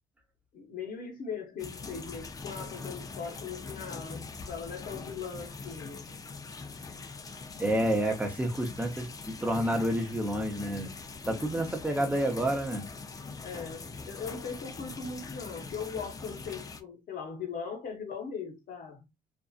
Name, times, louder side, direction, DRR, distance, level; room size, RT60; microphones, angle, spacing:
voice 1, 0.5-6.0 13.4-19.1, left 6 dB, 55° left, 0.9 m, -39 dB
sound 1, 1.6-16.8, left 4 dB, 20° left, 0.4 m, -42 dB
voice 2, 7.6-10.9 11.3-12.9, right 1 dB, 10° right, 0.7 m, -29 dB
2.6 x 2.4 x 2.3 m
cardioid pair, 110°, 17 cm